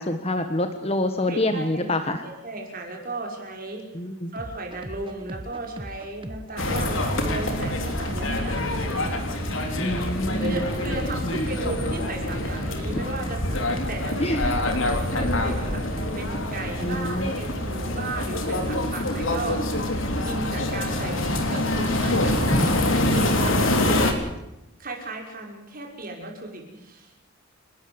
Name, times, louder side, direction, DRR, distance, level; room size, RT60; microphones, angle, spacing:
voice 1, 0.0-2.2 3.9-4.3 9.8-10.6 14.2-14.6 16.8-17.3 22.5-22.7, left 1 dB, 30° left, 7 dB, 1.3 m, -26 dB
voice 2, 1.3-3.8 4.3-8.7 10.4-13.4 13.7-14.5 15.1-15.8 16.2-19.7 20.2-24.1 24.8-27.1, right 2 dB, 40° right, 1 dB, 5.7 m, -35 dB
sound 1, 4.4-19.4, right 1 dB, 25° right, 1.3 m, -40 dB
sound 2, 6.6-24.1, left 1 dB, 65° left, 3.5 m, -25 dB
29.5 x 13.0 x 8.0 m, 0.93 s
head